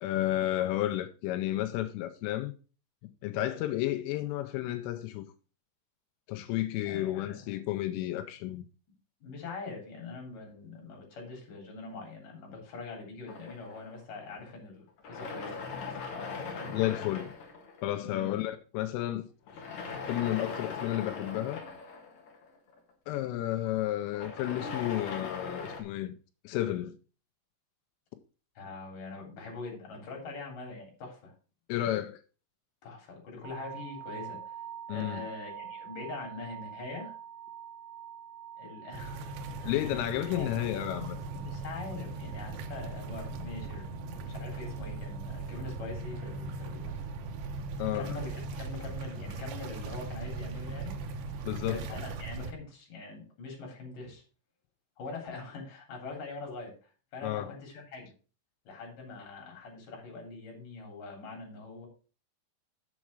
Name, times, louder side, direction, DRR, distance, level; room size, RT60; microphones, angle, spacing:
voice 1, 0.0-2.5 3.2-5.3 6.3-8.6 16.7-17.3 17.8-19.2 20.1-21.6 23.1-26.2 26.4-27.0 31.7-32.2 34.9-35.3 39.7-41.2 47.8-48.1 51.5-51.8 57.2-57.6, left 14 dB, 90° left, 3.3 m, -32 dB
voice 2, 6.9-7.6 9.2-16.7 18.0-18.4 28.6-31.3 32.8-34.6 34.9-37.2 38.6-39.8 40.3-40.5 41.3-47.0 47.9-50.9 51.6-54.2 55.0-58.1 58.6-61.9, left 3 dB, 45° left, 4.5 m, -43 dB
sound 1, 13.3-14.5 15.0-18.1 19.5-22.9 24.0-25.8, left 4 dB, 60° left, 1.9 m, -40 dB
sound 2, 33.4-47.5, right 10 dB, 60° right, 3.1 m, -47 dB
sound 3, 38.9-52.5, right 3 dB, 75° right, 2.2 m, -39 dB
7.6 x 7.3 x 4.7 m
omnidirectional pair, 5.6 m